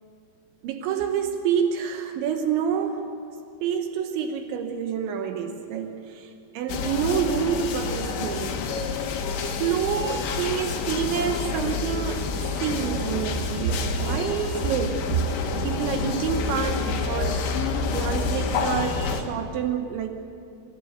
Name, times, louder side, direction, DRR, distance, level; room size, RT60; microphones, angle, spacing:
voice 1, 0.6-3.1 3.6-8.6 9.4-12.3 12.6-17.5 17.9-20.1, right 7 dB, 80° right, 5 dB, 3.4 m, -28 dB
sound 1, 6.7-19.2, left 5 dB, 80° left, 3.9 m, -28 dB
26.0 x 16.5 x 8.1 m, 2.5 s
omnidirectional pair, 5.3 m